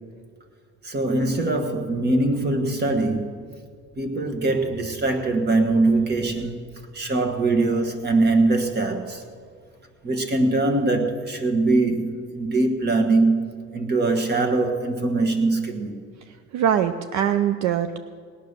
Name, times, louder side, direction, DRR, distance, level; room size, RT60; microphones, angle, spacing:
voice 1, 0.8-3.4 4.0-6.6 6.9-9.2 10.0-16.0, right 2 dB, 30° right, 1.5 m, -22 dB
voice 2, 16.5-18.0, right 9 dB, 60° right, 0.6 m, -22 dB
19.0 x 9.4 x 6.7 m
cardioid pair, 145°, 32 cm